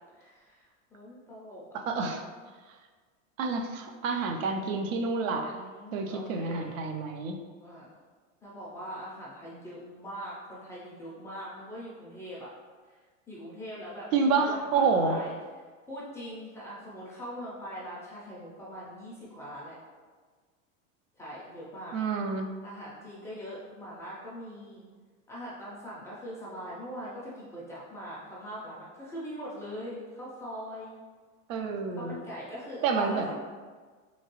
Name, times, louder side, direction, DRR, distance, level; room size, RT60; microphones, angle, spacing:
voice 1, 0.1-1.8 5.4-6.8 7.6-7.9 8.4-12.5 13.3-15.3 15.9-19.8 21.2-21.9 22.6-24.8 25.3-31.0 31.9-33.4, equal, 10° left, -7 dB, 0.3 m, -42 dB
voice 2, 1.7-2.2 3.4-5.5 5.9-7.4 14.1-15.2 21.9-22.5 31.5-32.2 32.8-33.4, right 4 dB, 80° right, 4 dB, 0.6 m, -28 dB
2.9 x 2.8 x 2.9 m, 1.5 s
supercardioid pair, 135°, 39 cm